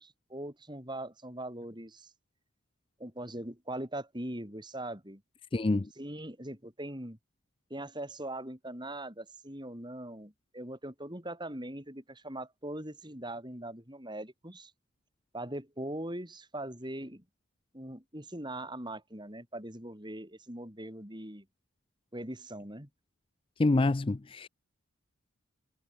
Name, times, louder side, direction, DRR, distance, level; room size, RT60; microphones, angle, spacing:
voice 1, 0.0-2.1 3.0-5.2 6.0-7.2 7.7-14.7 15.3-17.2 17.7-21.5 22.1-22.9, right 1 dB, 20° right, 7.3 m, -41 dB
voice 2, 5.5-5.9 23.6-24.5, left 2 dB, 25° left, 0.4 m, -26 dB
head